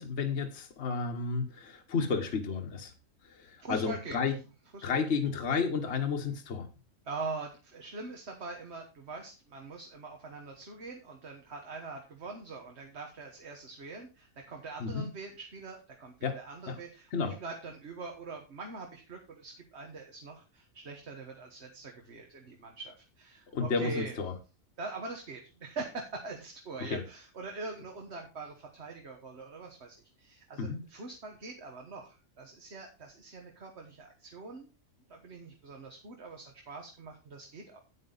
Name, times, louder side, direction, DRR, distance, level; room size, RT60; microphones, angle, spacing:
voice 1, 0.0-2.9 3.2-4.3 4.8-6.7 14.8-15.1 16.2-16.4 16.7-16.8 17.1-17.4 23.5-24.3 26.8-27.0 30.6-30.8, left 5 dB, 55° left, 3 dB, 1.4 m, -32 dB
voice 2, 3.6-4.2 4.7-5.2 7.0-24.1 24.8-34.7 35.1-37.8, right 3 dB, 50° right, 2 dB, 1.6 m, -43 dB
9.6 x 8.8 x 4.0 m, 0.31 s
omnidirectional pair, 1.4 m